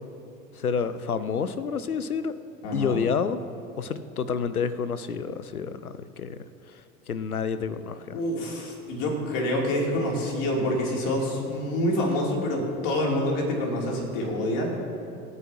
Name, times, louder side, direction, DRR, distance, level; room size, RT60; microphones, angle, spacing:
voice 1, 0.5-2.4 2.7-3.4 3.8-6.8 7.1-8.2, left 6 dB, 85° left, 14 dB, 0.6 m, -29 dB
voice 2, 2.6-3.0 8.1-14.7, left 1 dB, 50° left, -1 dB, 3.1 m, -27 dB
26.5 x 9.4 x 2.9 m, 2.6 s
figure-of-eight pair, 75°, 43 cm